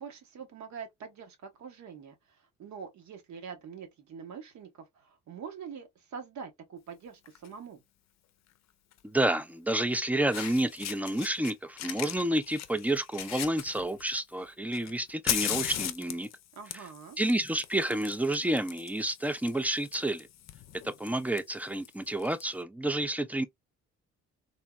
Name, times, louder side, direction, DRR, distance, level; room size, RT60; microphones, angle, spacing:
voice 1, 0.0-7.8 16.5-17.2, right 6 dB, 70° right, 1.1 m, -44 dB
Fire, 7.3-7.5 8.9-9.0 9.9-10.0 10.3-11.5 11.8-14.2 14.7-22.4, left 11 dB, 60° left, 0.5 m, -37 dB
voice 2, 9.0-16.3 17.2-20.3 21.0-23.4, right 1 dB, 5° right, 0.3 m, -30 dB
3.5 x 2.1 x 2.3 m
cardioid pair, 90°, 30 cm